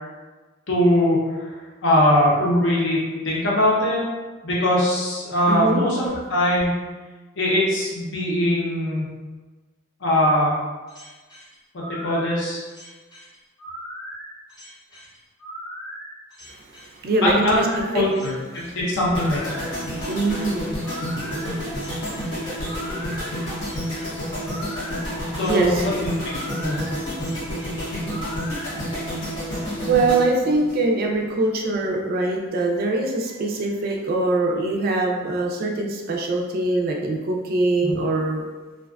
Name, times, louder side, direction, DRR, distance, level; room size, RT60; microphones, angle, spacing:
voice 1, 0.7-1.5 1.8-3.0 3.2-4.0 4.4-6.7 7.4-9.1 10.0-10.6 11.7-12.6 17.2-19.4 25.4-26.8 37.8-38.0, left 1 dB, 65° left, -5 dB, 0.7 m, -21 dB
voice 2, 5.5-5.8 17.0-18.0 18.6-18.7 20.1-23.8 24.1-25.8 29.9-38.5, right 2 dB, 50° right, 0 dB, 0.3 m, -24 dB
sound 1, 10.9-28.7, equal, 20° left, 0.6 m, -39 dB
sound 2, 19.1-31.3 31.6-31.9, equal, 80° left, 1.1 m, -29 dB
2.4 x 2.2 x 2.3 m, 1.3 s
head